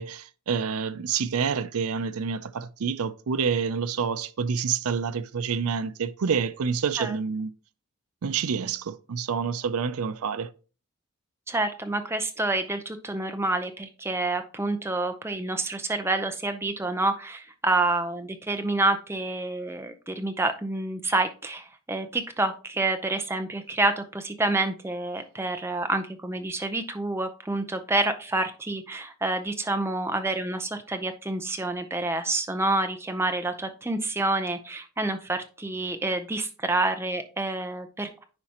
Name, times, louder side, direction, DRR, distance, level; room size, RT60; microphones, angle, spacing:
voice 1, 0.0-7.5 8.2-10.5, right 6 dB, 85° right, 0.5 m, -28 dB
voice 2, 11.5-38.3, right 2 dB, 10° right, 0.6 m, -28 dB
9.6 x 4.9 x 2.9 m
head